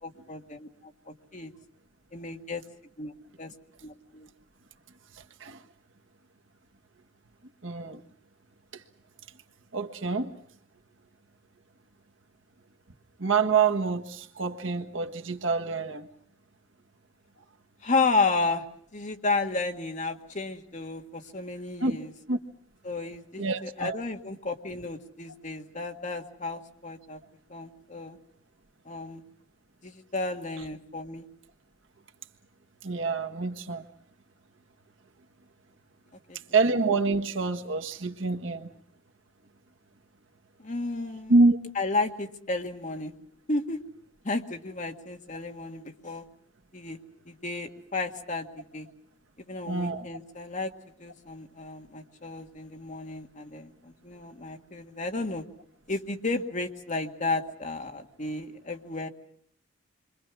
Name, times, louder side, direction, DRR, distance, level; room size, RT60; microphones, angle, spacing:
voice 1, 0.0-1.5 2.1-2.6 3.0-3.1 3.4-3.5 3.8-4.3 17.8-18.6 18.9-22.1 22.8-27.2 27.5-28.2 28.9-29.2 29.8-31.3 36.3-36.4 40.6-41.3 41.8-43.1 43.5-43.8 44.2-46.2 46.7-47.0 47.3-48.9 49.4-50.7 51.0-55.5 55.9-59.1, left 3 dB, 40° left, 1.9 m, -32 dB
voice 2, 7.6-8.0 9.7-10.3 13.2-16.1 21.8-22.0 22.3-22.4 23.4-24.0 32.8-33.8 36.5-38.7 41.3-41.6 49.7-50.1, right 3 dB, 70° right, 1.5 m, -26 dB
28.0 x 24.5 x 6.2 m
head